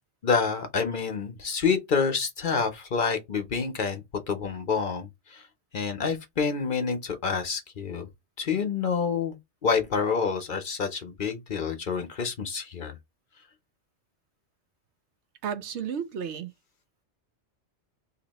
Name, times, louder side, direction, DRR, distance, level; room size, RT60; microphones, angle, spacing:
voice 1, 0.2-5.4 5.7-8.1 8.4-9.4 9.6-13.0, left 5 dB, 50° left, 0.8 m, -28 dB
voice 2, 15.4-16.5, right 8 dB, 80° right, 0.9 m, -32 dB
2.9 x 2.6 x 4.0 m
omnidirectional pair, 1.2 m